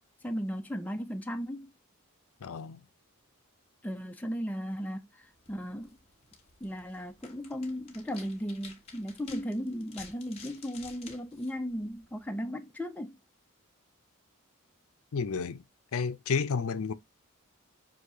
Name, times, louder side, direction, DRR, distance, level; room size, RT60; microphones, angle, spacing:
voice 1, 0.2-1.7 3.8-6.0 6.6-13.2, equal, 5° left, 0.4 m, -36 dB
voice 2, 2.4-2.8 15.1-15.6 15.9-16.9, left 5 dB, 70° left, 0.5 m, -31 dB
sound 1, 5.3-12.3, left 5 dB, 25° left, 1.2 m, -53 dB
6.2 x 2.7 x 2.6 m
head